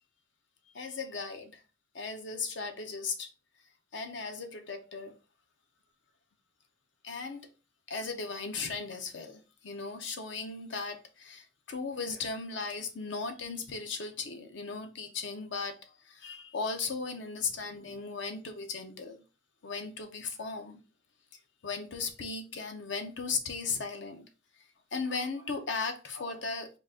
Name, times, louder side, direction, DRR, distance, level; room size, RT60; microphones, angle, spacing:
voice 1, 0.7-1.5 1.9-3.3 3.9-5.1 7.0-7.4 7.9-19.2 19.6-20.8 21.6-24.3 24.9-26.7, left 4 dB, 75° left, 0.7 m, -37 dB
3.9 x 2.4 x 3.6 m
head